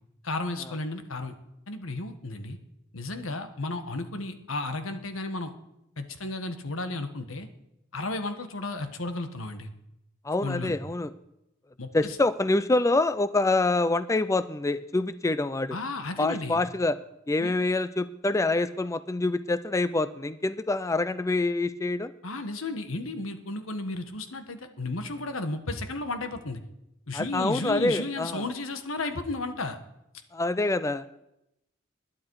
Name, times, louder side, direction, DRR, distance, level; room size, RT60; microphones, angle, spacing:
voice 1, 0.2-1.3 1.7-2.6 2.9-5.5 6.0-7.5 7.9-9.7 10.4-10.8 11.8-12.2 15.7-16.6 17.4-17.5 22.2-26.6 27.1-29.8, left 2 dB, 85° left, 8 dB, 1.5 m, -33 dB
voice 2, 10.2-11.1 11.9-15.8 16.2-17.0 17.3-22.1 27.1-28.4 30.3-31.1, left 2 dB, 15° left, 14 dB, 0.4 m, -26 dB
20.5 x 11.0 x 4.8 m, 0.87 s
head